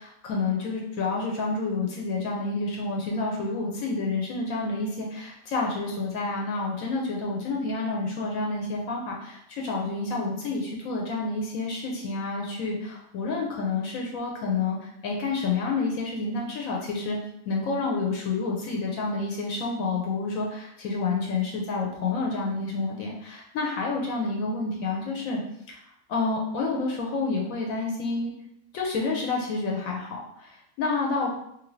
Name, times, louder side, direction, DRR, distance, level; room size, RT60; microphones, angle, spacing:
voice 1, 0.0-17.2 17.5-25.4 25.7-25.8 26.1-28.3 28.7-31.3, left 3 dB, 80° left, -1 dB, 1.0 m, -29 dB
2.7 x 2.6 x 3.0 m, 0.76 s
omnidirectional pair, 1.5 m